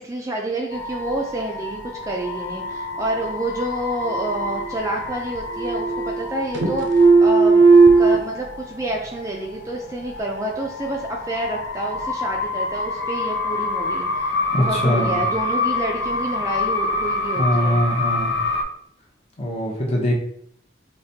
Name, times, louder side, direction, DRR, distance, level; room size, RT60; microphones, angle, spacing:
voice 1, 0.0-7.6 8.0-17.8, right 1 dB, 15° right, 0 dB, 0.3 m, -28 dB
sound 1, 0.7-18.6, left 2 dB, 65° left, 0.6 m, -28 dB
sound 2, 4.1-5.0 5.3-6.3 6.5-8.2, right 4 dB, 70° right, 0.6 m, -15 dB
voice 2, 14.5-15.2 17.3-18.3 19.4-20.1, left 1 dB, 30° left, -1 dB, 0.8 m, -22 dB
4.8 x 2.1 x 2.7 m, 0.67 s
head